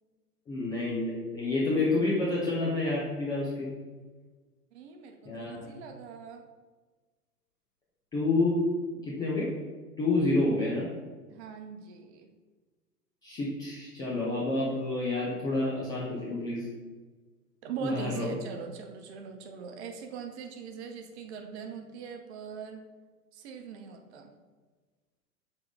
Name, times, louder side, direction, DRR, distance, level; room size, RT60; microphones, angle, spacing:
voice 1, 0.5-3.7 5.2-5.7 8.1-8.7 9.0-9.6 10.0-10.9 13.2-16.7 17.8-18.4, left 2 dB, 10° left, -7 dB, 0.4 m, -29 dB
voice 2, 4.7-6.4 11.3-12.3 17.6-22.8 23.3-24.3, right 6 dB, 45° right, 5 dB, 0.9 m, -41 dB
6.7 x 3.9 x 3.7 m, 1.4 s
figure-of-eight pair, 105°, 47 cm